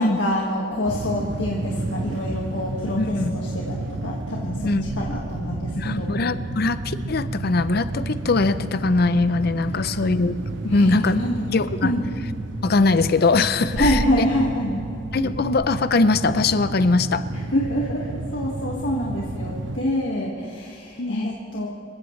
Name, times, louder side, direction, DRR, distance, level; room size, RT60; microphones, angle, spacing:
voice 1, 0.0-6.2 10.7-12.0 13.8-14.8 17.3-21.7, left 1 dB, 70° left, -3 dB, 1.9 m, -26 dB
sound 1, 0.8-19.8, right 2 dB, 75° right, 0.8 m, -31 dB
voice 2, 3.0-3.3 4.6-4.8 5.8-10.4 10.6-11.2 11.5-11.9 12.6-14.3 15.1-17.3 18.7-18.8 21.0-21.4, left 3 dB, 55° left, 13 dB, 0.6 m, -21 dB
26.5 x 16.0 x 3.3 m, 2.4 s
head